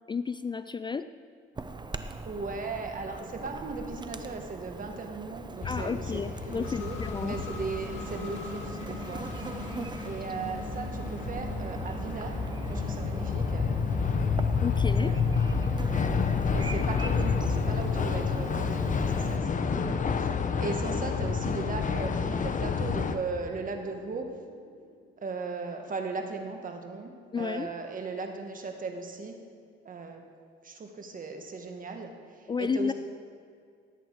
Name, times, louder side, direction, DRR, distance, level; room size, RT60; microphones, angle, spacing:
voice 1, 0.1-1.1 5.6-7.4 14.6-15.1 27.3-27.7 32.5-32.9, left 5 dB, 25° left, 12 dB, 0.3 m, -32 dB
Chirp tweet / Buzz, 1.6-19.4, right 4 dB, 20° right, 0.7 m, -40 dB
voice 2, 2.2-6.2 6.6-9.2 10.0-12.3 12.6-13.7 15.0-15.6 16.5-24.3 25.2-27.1 27.4-29.4 29.8-30.2 30.6-32.1 32.4-32.9, right 4 dB, 45° right, 4 dB, 1.5 m, -37 dB
sound 1, 5.6-23.2, left 5 dB, 40° left, 0.8 m, -30 dB
sound 2, 6.6-25.1, left 4 dB, 70° left, 2.1 m, -44 dB
17.5 x 8.0 x 4.7 m, 2.2 s
cardioid pair, 90°, 20 cm